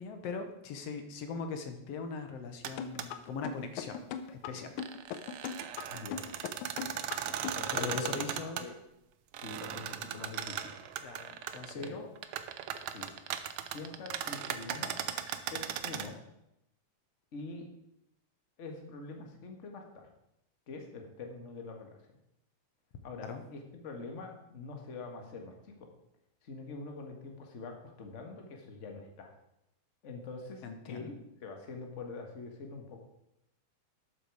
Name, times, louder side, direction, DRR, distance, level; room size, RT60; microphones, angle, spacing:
voice 1, 0.0-4.0 4.3-4.7 5.1-5.2 7.7-8.7 11.0-12.0 23.2-23.4 30.6-31.1, left 5 dB, 65° left, 7 dB, 2.0 m, -40 dB
sound 1, 2.6-2.7 3.0-3.1 4.6-8.6 9.3-11.9 12.2-16.1, right 10 dB, 90° right, 1.1 m, -37 dB
sound 2, 2.8-8.1, left 8 dB, 80° left, 2.2 m, -39 dB
voice 2, 5.9-6.3 7.5-8.7 9.4-10.7 11.7-12.1 12.9-13.1 13.7-14.9 15.5-16.2 17.3-17.7 18.6-20.1 20.7-22.0 23.0-25.9 26.4-29.3 30.0-31.1 31.4-33.0, left 3 dB, 30° left, 3 dB, 1.5 m, -44 dB
12.5 x 8.5 x 4.9 m, 0.83 s
omnidirectional pair, 3.3 m